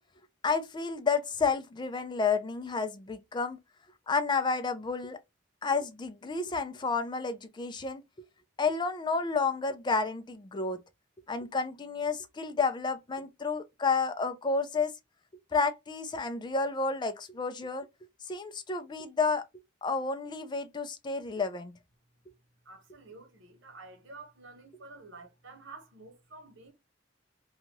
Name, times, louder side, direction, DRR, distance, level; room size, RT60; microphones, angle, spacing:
voice 1, 0.4-3.6 4.1-5.2 5.6-8.0 8.6-10.8 11.3-14.9 15.5-17.9 18.3-19.4 19.8-21.7, left 4 dB, 25° left, 0.4 m, -30 dB
voice 2, 22.6-26.7, right 3 dB, 80° right, 1.0 m, -50 dB
2.8 x 2.3 x 2.9 m
head